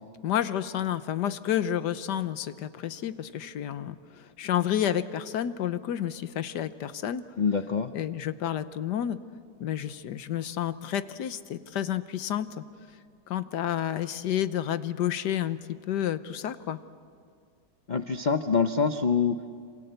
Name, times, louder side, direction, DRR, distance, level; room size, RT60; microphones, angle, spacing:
voice 1, 0.2-7.2 7.9-9.2 9.6-12.6 13.3-15.6 15.9-16.8, left 10 dB, 80° left, 13 dB, 1.5 m, -30 dB
voice 2, 7.4-7.9 17.9-19.4, left 5 dB, 45° left, 9 dB, 0.5 m, -25 dB
27.5 x 27.0 x 8.1 m, 2.2 s
omnidirectional pair, 1.8 m